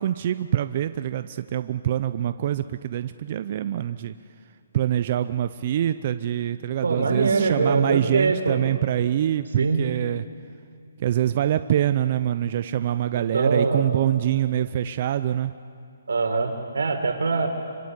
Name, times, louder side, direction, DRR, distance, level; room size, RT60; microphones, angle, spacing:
voice 1, 0.0-4.1 4.7-10.3 11.0-15.5, right 11 dB, 35° right, 11 dB, 0.6 m, -25 dB
voice 2, 6.8-8.6 9.6-9.8 13.3-13.9 16.1-17.5, right 4 dB, 90° right, 6 dB, 4.0 m, -23 dB
26.0 x 26.0 x 8.3 m, 2.4 s
hypercardioid pair, 165°, 0 cm